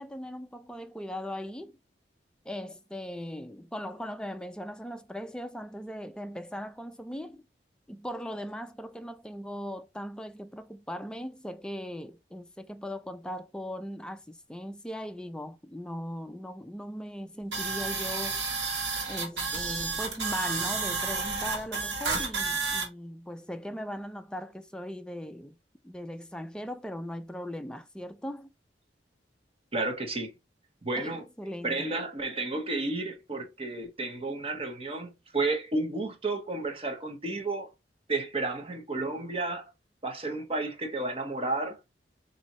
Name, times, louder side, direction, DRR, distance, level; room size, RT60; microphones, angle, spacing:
voice 1, 0.0-1.8 2.5-7.4 7.9-18.4 19.1-25.6 25.8-28.5 31.0-31.9, equal, 5° left, 0.3 m, -39 dB
sound 1, 17.5-22.9, right 4 dB, 80° right, 1.4 m, -31 dB
voice 2, 29.7-30.3 30.8-31.2 31.6-37.7 38.1-39.6 40.0-41.8, right 2 dB, 35° right, 0.8 m, -32 dB
4.1 x 2.7 x 2.9 m
head